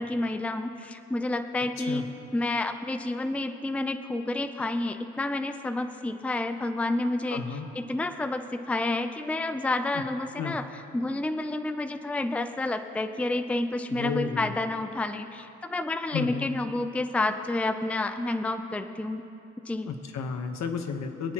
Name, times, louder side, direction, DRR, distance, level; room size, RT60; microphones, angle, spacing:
voice 1, 0.0-2.0 2.3-7.4 7.7-10.6 10.9-19.2 19.7-19.9, left 2 dB, 5° left, 7 dB, 0.5 m, -29 dB
voice 2, 7.3-7.7 9.9-10.0 10.4-10.6 13.9-14.5 16.1-16.5 19.9-21.3, left 6 dB, 65° left, 5 dB, 1.1 m, -32 dB
25.0 x 8.5 x 3.0 m, 2.9 s
cardioid pair, 90°, 30 cm